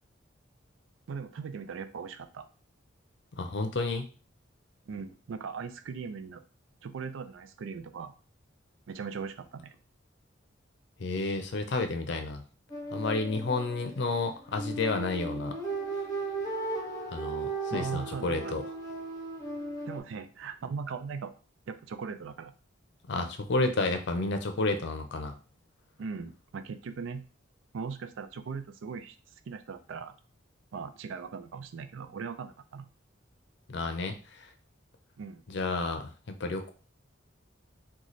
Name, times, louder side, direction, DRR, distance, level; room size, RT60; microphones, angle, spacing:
voice 1, 1.1-2.5 4.9-6.4 6.8-8.1 8.9-9.7 17.7-18.7 19.8-21.3 21.7-22.5 26.0-27.2 27.7-29.2 29.5-30.1 30.7-32.9 35.2-35.4, right 5 dB, 80° right, 10 dB, 0.4 m, -39 dB
voice 2, 3.4-4.1 11.0-12.4 12.9-15.6 17.1-18.6 23.1-25.3 33.7-34.5 35.5-36.7, left 3 dB, 65° left, 7 dB, 0.6 m, -31 dB
sound 1, 12.7-20.0, right 3 dB, 20° left, 0.8 m, -36 dB
3.1 x 2.3 x 3.9 m, 0.37 s
head